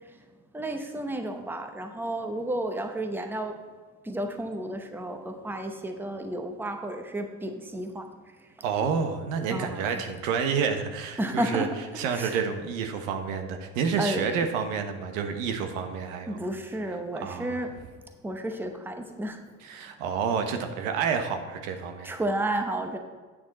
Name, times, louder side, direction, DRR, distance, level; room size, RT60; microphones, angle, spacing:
voice 1, 0.5-3.5 4.0-8.0 9.5-10.0 11.2-11.7 12.1-12.4 14.0-14.3 16.3-17.7 18.2-19.4 22.0-23.0, right 1 dB, 5° right, 5 dB, 0.8 m, -32 dB
voice 2, 8.6-11.7 11.9-16.4 17.2-17.6 19.6-22.1, right 6 dB, 85° right, 6 dB, 1.1 m, -29 dB
9.1 x 6.3 x 4.2 m, 1.4 s
supercardioid pair, 110°, 38 cm